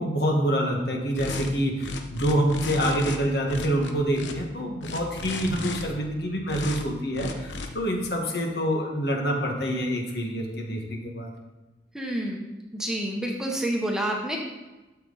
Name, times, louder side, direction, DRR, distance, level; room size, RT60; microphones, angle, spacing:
voice 1, 0.0-11.3, equal, 60° left, 1 dB, 1.7 m, -26 dB
sound 1, 1.2-1.5 1.8-3.2 3.5-4.3 4.8-5.8 6.5-6.8 7.1-7.7, left 2 dB, 85° left, 1.0 m, -34 dB
voice 2, 11.9-12.4 12.7-14.4, right 1 dB, 5° right, -1 dB, 1.1 m, -28 dB
12.0 x 7.2 x 4.1 m, 1.1 s
head